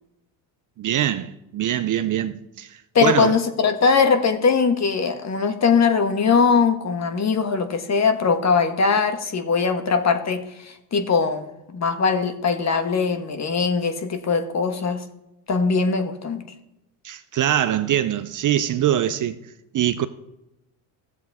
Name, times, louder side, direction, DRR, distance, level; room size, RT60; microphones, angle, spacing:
voice 1, 0.8-3.4 17.0-19.4 19.7-20.1, right 11 dB, 40° right, 0.6 m, -23 dB
voice 2, 2.9-15.0 15.5-16.4, left 5 dB, 35° left, 1.4 m, -21 dB
16.0 x 7.4 x 3.5 m
supercardioid pair, 85°, 48 cm